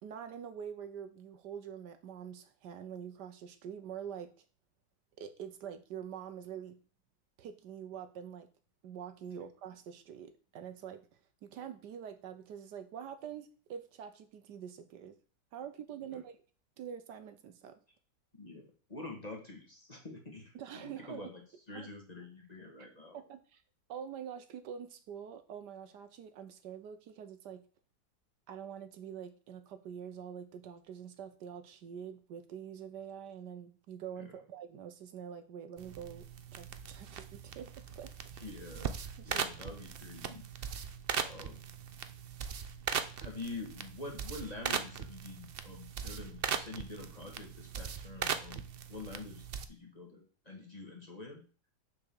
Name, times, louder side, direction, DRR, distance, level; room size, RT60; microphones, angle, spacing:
voice 1, 0.0-4.4 5.2-6.8 7.4-8.5 8.8-11.1 11.4-15.2 15.5-16.4 16.8-17.8 20.5-21.3 21.7-21.9 23.1-23.6 23.9-27.6 28.5-37.7 37.9-38.1 39.2-39.5, right 8 dB, 70° right, 9 dB, 1.4 m, -45 dB
voice 2, 18.3-21.4 21.7-23.2 34.2-34.3 38.4-40.8 41.2-41.6 43.2-48.6 48.9-51.4, left 3 dB, 20° left, 0 dB, 1.8 m, -46 dB
sound 1, 35.8-49.7, right 7 dB, 90° right, 0.5 m, -39 dB
6.9 x 4.8 x 7.0 m, 0.38 s
omnidirectional pair, 1.9 m